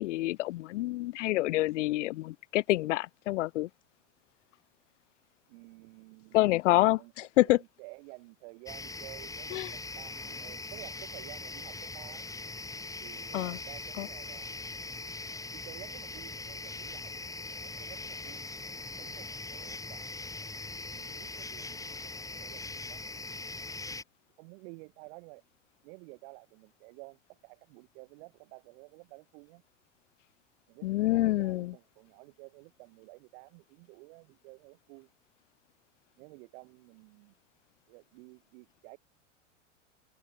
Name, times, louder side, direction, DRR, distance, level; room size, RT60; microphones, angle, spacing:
voice 1, 0.0-3.7 6.3-7.6 9.5-9.7 13.3-13.6 14.0-14.1 30.8-31.7, left 17 dB, 70° left, 0.6 m, -27 dB
voice 2, 5.5-6.4 7.0-12.3 13.0-14.6 15.5-18.5 19.0-20.5 20.9-23.7 24.4-25.4 25.8-29.6 30.7-35.1 36.2-37.3 37.9-39.0, right 32 dB, 55° right, 6.1 m, -52 dB
sound 1, 8.7-24.0, left 3 dB, 10° left, 2.0 m, -41 dB
open air
hypercardioid pair, 95°, 38 cm